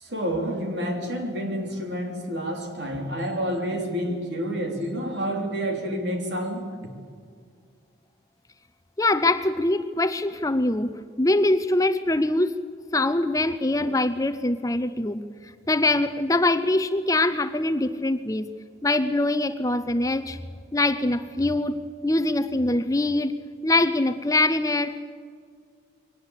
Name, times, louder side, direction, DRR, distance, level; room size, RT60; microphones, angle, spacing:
voice 1, 0.0-6.7, equal, 65° right, 3 dB, 3.6 m, -29 dB
voice 2, 9.0-12.5 12.9-18.5 18.8-20.4 20.7-23.3 23.6-25.0, left 2 dB, 15° left, 11 dB, 0.6 m, -23 dB
23.0 x 18.5 x 8.3 m, 2.1 s
head